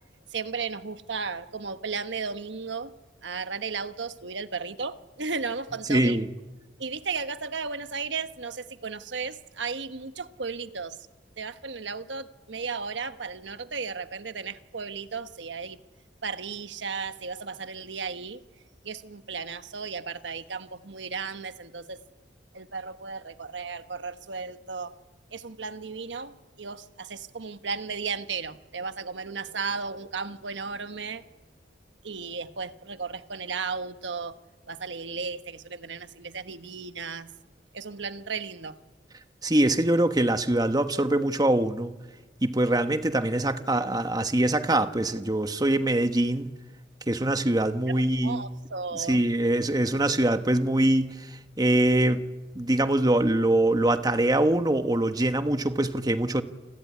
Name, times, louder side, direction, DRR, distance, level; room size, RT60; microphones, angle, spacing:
voice 1, 0.3-2.9 3.2-6.2 6.8-11.0 11.4-15.8 16.2-18.4 18.8-22.0 22.5-25.0 25.3-31.4 32.0-34.3 34.7-37.3 37.7-38.8 47.9-49.2, right 5 dB, 85° right, 1.3 m, -35 dB
voice 2, 5.9-6.3 39.4-42.0 42.4-46.5 47.1-48.5 49.0-52.2 52.6-56.4, right 1 dB, 20° right, 1.2 m, -23 dB
29.0 x 21.0 x 9.6 m
head